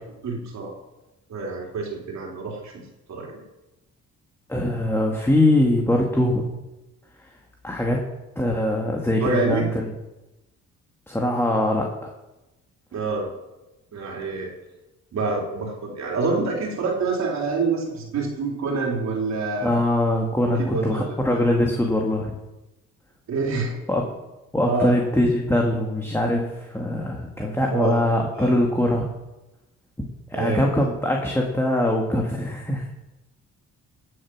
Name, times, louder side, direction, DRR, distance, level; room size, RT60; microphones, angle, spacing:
voice 1, 0.2-0.7 1.3-2.7 3.1-3.4 9.2-9.6 12.9-13.3 13.9-14.5 15.1-19.8 20.4-21.2 23.3-23.8 24.6-24.9 27.7-28.0 28.4-28.6 30.3-30.7, right 3 dB, 65° right, -1 dB, 3.6 m, -26 dB
voice 2, 4.5-6.5 7.6-8.0 8.4-9.8 11.1-11.9 19.6-22.4 23.9-24.0 24.5-29.1 30.0-32.9, left 1 dB, 10° left, 0 dB, 2.0 m, -22 dB
16.0 x 7.8 x 6.2 m, 1.0 s
cardioid pair, 90°, 30 cm